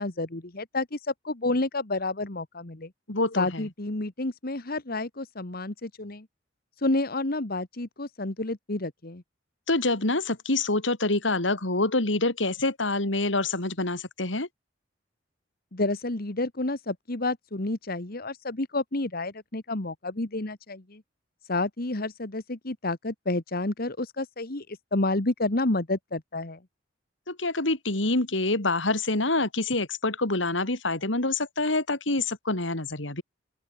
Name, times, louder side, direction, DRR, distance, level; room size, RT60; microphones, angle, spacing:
voice 1, 0.0-2.9 3.4-6.3 6.8-9.2 15.7-21.0 21.5-26.6, left 2 dB, 55° left, 1.9 m, -30 dB
voice 2, 3.1-3.6 9.7-14.5 27.3-33.2, left 2 dB, 85° left, 3.6 m, -26 dB
open air
head